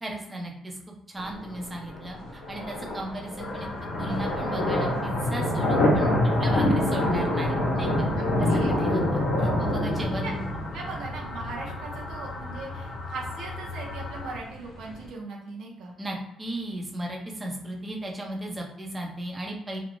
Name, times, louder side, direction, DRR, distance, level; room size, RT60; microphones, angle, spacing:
voice 1, 0.0-0.8 1.1-3.7 4.0-6.1 6.4-8.1 8.4-10.4 16.0-19.8, right 1 dB, 20° right, 0 dB, 0.7 m, -35 dB
sound 1, 1.2-15.1, left 1 dB, 85° left, 0.7 m, -27 dB
sound 2, 3.4-14.4, left 3 dB, 55° left, 0.7 m, -39 dB
voice 2, 8.0-8.7 10.0-10.3 10.7-15.9, right 3 dB, 80° right, 0 dB, 0.6 m, -39 dB
2.5 x 2.0 x 3.0 m, 0.83 s
cardioid pair, 90°, 0 cm